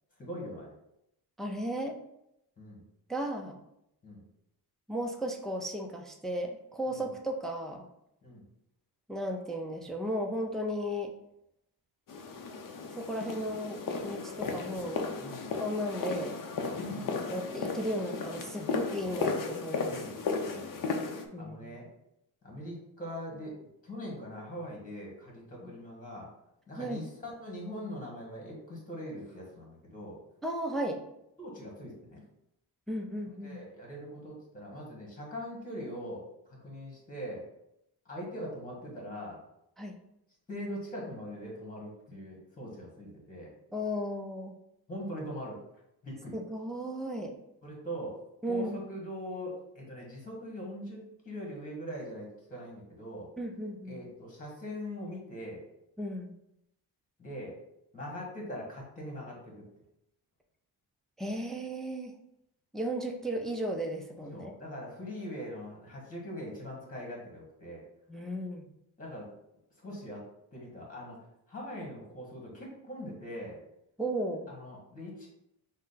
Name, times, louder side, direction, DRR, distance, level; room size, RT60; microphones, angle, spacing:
voice 1, 0.2-0.7 2.6-2.8 4.0-4.2 6.9-7.1 8.2-8.4 15.2-15.5 16.9-17.2 19.8-20.1 20.4-20.9 21.4-21.9 22.4-23.5 23.8-26.3 26.7-30.2 31.4-32.2 33.2-36.3 36.6-37.4 38.0-39.4 40.5-43.5 44.9-45.6 46.0-46.4 47.6-48.2 48.5-53.3 53.9-55.6 57.2-57.6 57.9-59.6 64.3-67.8 69.0-69.3 69.8-70.2 70.5-71.2 71.5-73.6 74.5-75.3, equal, 20° left, -2 dB, 1.4 m, -42 dB
voice 2, 1.4-2.0 3.1-3.6 4.9-7.9 9.1-11.1 12.9-15.0 15.6-16.4 17.2-20.0 21.3-21.7 25.6-25.7 26.8-27.0 30.4-31.0 32.9-33.6 39.8-40.0 43.7-44.5 46.3-47.3 48.4-48.8 53.4-54.0 56.0-56.3 61.2-62.1 62.7-64.5 68.1-68.7 74.0-74.5, equal, ahead, 2 dB, 0.3 m, -35 dB
Gallery footsteps, 12.1-21.3, left 4 dB, 55° left, 0.6 m, -35 dB
6.1 x 2.1 x 3.9 m, 0.81 s
wide cardioid pair, 160°, 38 cm